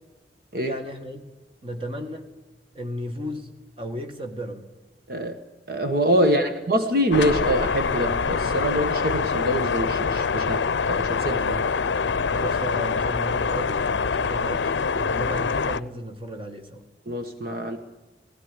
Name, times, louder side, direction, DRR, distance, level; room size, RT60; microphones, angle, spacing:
voice 1, 0.5-1.3 1.6-2.3 2.7-4.7 6.2-6.6 12.3-16.8, equal, 30° right, 5 dB, 2.0 m, -34 dB
voice 2, 5.7-11.6 17.1-17.8, equal, 55° right, 6 dB, 1.5 m, -25 dB
sound 1, 7.1-15.8, left 5 dB, 85° left, 0.6 m, -25 dB
19.0 x 16.0 x 9.8 m, 1.1 s
head